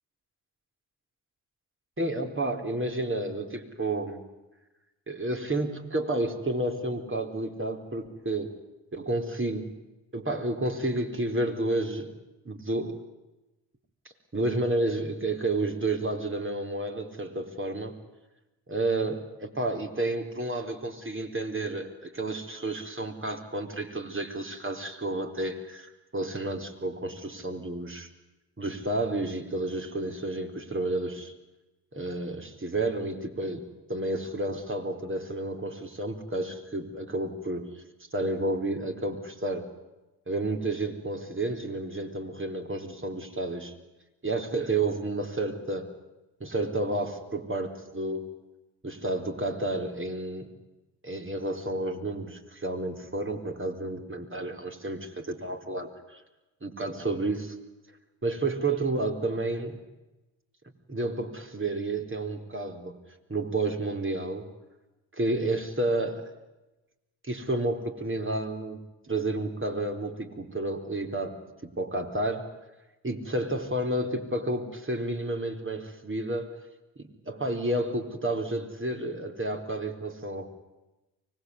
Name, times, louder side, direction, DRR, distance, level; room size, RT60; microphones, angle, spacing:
voice 1, 2.0-4.2 5.1-8.6 8.9-9.7 10.1-12.1 12.4-13.0 14.3-18.0 18.7-28.1 28.6-31.3 31.9-37.7 38.1-39.7 40.3-43.7 44.2-45.9 46.4-48.3 48.8-50.5 51.0-56.2 56.6-57.6 58.2-59.8 60.9-63.0 63.3-64.5 65.1-66.3 67.2-68.8 69.1-72.5 73.0-76.6 77.0-80.5, right 2 dB, 25° right, 4 dB, 4.3 m, -31 dB
24.5 x 19.5 x 9.8 m, 1.0 s
hypercardioid pair, 45°, 45 cm